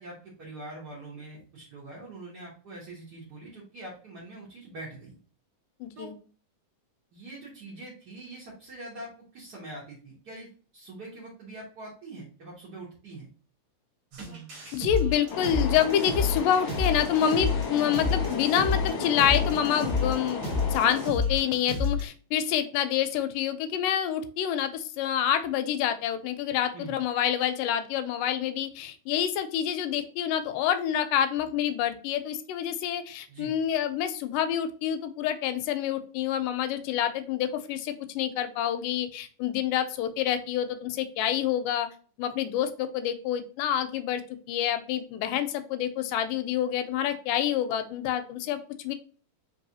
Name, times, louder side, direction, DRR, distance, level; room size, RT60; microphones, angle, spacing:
voice 1, 0.0-5.2 5.9-6.1 7.1-13.3 26.7-26.9 33.3-33.5, right 2 dB, 70° right, -6 dB, 0.9 m, -43 dB
voice 2, 5.8-6.1 14.7-41.9 42.2-44.2 44.5-48.9, left 10 dB, 85° left, 9 dB, 2.2 m, -27 dB
sound 1, 14.1-22.1, left 4 dB, 50° right, 1.5 m, -30 dB
sound 2, 15.3-21.1, left 4 dB, 60° left, 1.2 m, -34 dB
4.6 x 3.3 x 2.7 m, 0.40 s
omnidirectional pair, 3.7 m